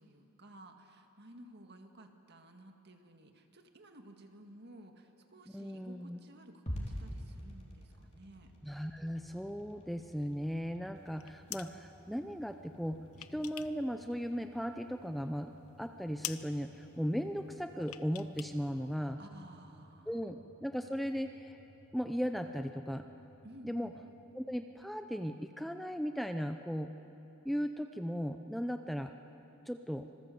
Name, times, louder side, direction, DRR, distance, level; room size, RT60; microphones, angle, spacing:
voice 1, 0.0-8.5 19.2-20.3 23.4-24.0, right 1 dB, 50° right, 5 dB, 1.9 m, -55 dB
voice 2, 5.5-6.2 8.6-13.0 13.3-15.5 15.8-19.2 20.1-21.6 21.9-23.0 23.6-23.9 24.3-26.9 27.4-29.1 29.7-30.1, equal, ahead, 7 dB, 0.5 m, -37 dB
sound 1, 6.7-24.9, equal, 30° left, 3.7 m, -51 dB
sound 2, 11.0-11.8 12.8-13.9 14.1-15.0 15.4-15.5 15.8-15.9 16.2-16.5 17.8-18.6 18.8-18.9, left 13 dB, 85° left, 0.8 m, -45 dB
26.0 x 19.5 x 7.8 m, 2.9 s
head